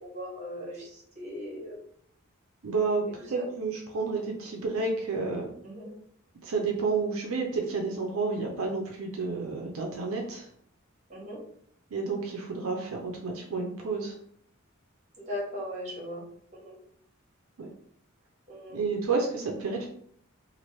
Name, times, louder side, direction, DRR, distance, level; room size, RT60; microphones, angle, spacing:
voice 1, 0.0-1.8 3.3-3.5 5.6-5.9 11.1-11.4 15.2-16.2 16.5-16.8 18.5-18.8, equal, 35° right, -3 dB, 1.2 m, -38 dB
voice 2, 2.6-5.5 6.4-10.5 11.9-14.1 17.6-17.7 18.7-19.9, right 4 dB, 80° right, 1 dB, 0.5 m, -30 dB
2.9 x 2.5 x 3.0 m, 0.65 s
head